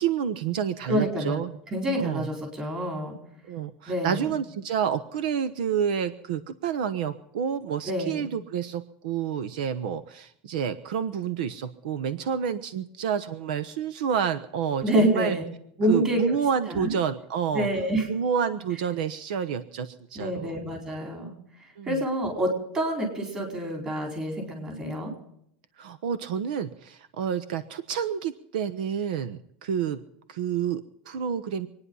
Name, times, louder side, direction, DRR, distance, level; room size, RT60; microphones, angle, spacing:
voice 1, 0.0-1.6 1.9-2.3 3.5-15.4 15.9-17.7 18.1-20.5 21.8-22.0 25.8-30.0 30.3-31.7, right 8 dB, 75° right, 15 dB, 1.0 m, -29 dB
voice 2, 0.8-1.4 1.7-3.2 3.9-4.4 7.8-8.2 14.8-15.4 15.8-16.4 16.7-16.9 17.5-18.1 20.1-21.3 21.8-25.1, right 1 dB, 15° right, 2 dB, 4.3 m, -27 dB
25.5 x 9.9 x 5.6 m, 0.72 s
supercardioid pair, 175°, 5 cm